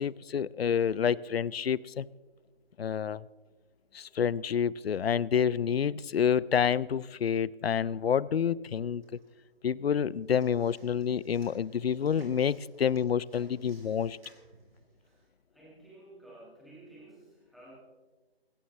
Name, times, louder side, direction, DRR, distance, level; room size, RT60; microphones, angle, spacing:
voice 1, 0.0-2.1 2.8-3.2 3.9-9.2 9.6-14.2, left 8 dB, 70° left, 22 dB, 0.6 m, -28 dB
sound 1, 8.7-9.6 9.9-15.3, right 2 dB, 65° right, 5.2 m, -59 dB
voice 2, 15.5-17.8, right 2 dB, ahead, -8 dB, 1.7 m, -53 dB
21.0 x 16.0 x 3.2 m, 1.3 s
hypercardioid pair, 170°, 31 cm